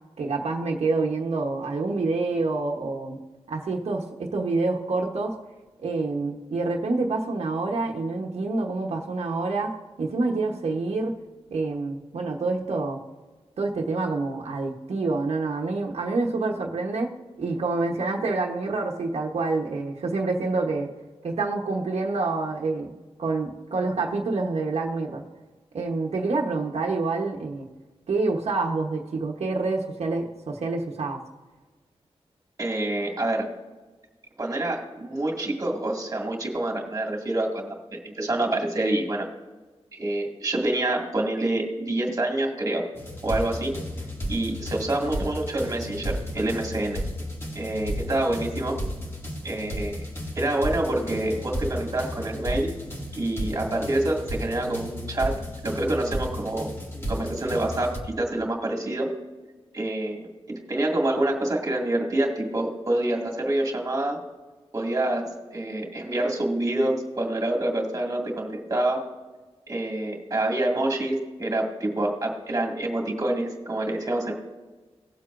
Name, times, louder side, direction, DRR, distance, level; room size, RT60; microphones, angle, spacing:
voice 1, 0.2-3.2 3.5-5.4 5.8-11.1 11.5-13.0 13.6-17.1 17.4-20.9 21.2-22.9 23.2-25.2 25.7-27.7 28.1-31.2, right 3 dB, 85° right, -1 dB, 1.1 m, -27 dB
voice 2, 32.6-33.5 34.4-39.3 39.9-42.9 43.2-43.7 44.3-47.0 47.5-48.8 49.4-50.0 50.4-52.7 53.1-55.3 55.6-59.1 59.7-64.2 64.7-69.0 69.7-74.3, right 1 dB, 30° right, 0 dB, 2.1 m, -27 dB
sound 1, 43.0-58.0, equal, 25° left, 2.0 m, -33 dB
18.0 x 7.6 x 2.6 m, 1.3 s
wide cardioid pair, 150°, 11 cm